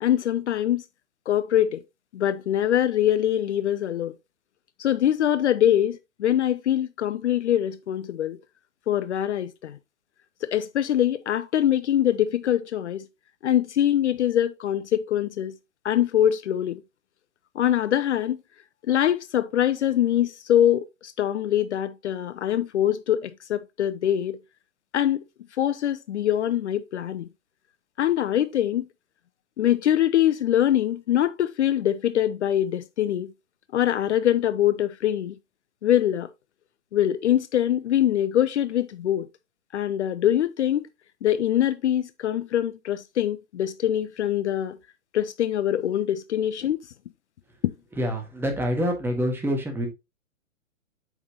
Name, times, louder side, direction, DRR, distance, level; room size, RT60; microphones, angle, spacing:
voice 1, 0.0-0.8 1.3-1.8 2.1-4.1 4.8-8.4 8.9-9.8 10.4-13.1 13.4-15.6 15.8-16.8 17.6-18.4 18.9-24.4 24.9-25.2 25.6-27.3 28.0-28.9 29.6-33.3 33.7-35.4 35.8-36.3 36.9-39.3 39.7-40.8 41.2-44.8 45.1-46.8 47.6-47.7, left 11 dB, 60° left, 0.6 m, -23 dB
voice 2, 48.0-49.9, equal, 5° right, 1.6 m, -26 dB
8.1 x 5.9 x 2.9 m
figure-of-eight pair, 125°, 40 cm